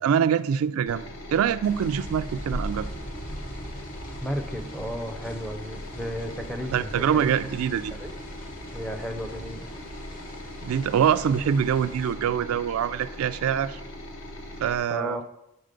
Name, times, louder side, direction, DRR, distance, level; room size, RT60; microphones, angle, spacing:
voice 1, 0.0-2.9 6.7-7.9 10.6-13.8 14.6-15.2, right 8 dB, 75° right, 14 dB, 0.3 m, -24 dB
sound 1, 0.9-14.8, left 1 dB, 65° left, 1.1 m, -40 dB
sound 2, 1.6-12.1, equal, 40° left, 1.1 m, -40 dB
voice 2, 4.2-7.3 7.9-8.1 8.7-9.7 14.9-15.2, equal, ahead, 4 dB, 0.4 m, -34 dB
7.7 x 4.0 x 5.1 m, 0.88 s
head